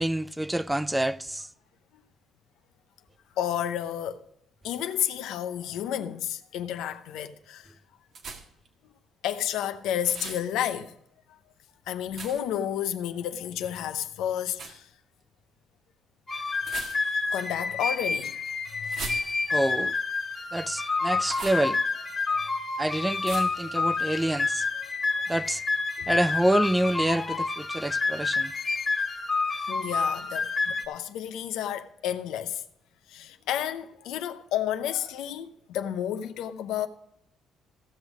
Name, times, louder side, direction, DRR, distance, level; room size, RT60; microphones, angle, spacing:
voice 1, 0.0-1.5 19.5-19.9 20.5-21.8 22.8-24.7 25.3-25.6 26.1-28.5, right 1 dB, 10° right, 0.4 m, -27 dB
voice 2, 3.4-4.2 4.6-7.7 9.2-10.9 11.9-14.9 17.3-18.3 18.8-19.2 22.3-22.4 25.1-25.2 26.0-26.1 29.7-32.6 33.1-36.9, left 10 dB, 85° left, 0.8 m, -31 dB
sound 1, 8.1-8.7 10.0-10.5 12.1-12.6 14.5-14.8 16.6-17.3 18.8-19.7 21.2-21.7 23.2-23.7, right 4 dB, 60° right, 1.7 m, -39 dB
sound 2, 16.3-30.9, left 4 dB, 30° left, 1.8 m, -29 dB
16.0 x 6.3 x 4.9 m
supercardioid pair, 70°, 0 cm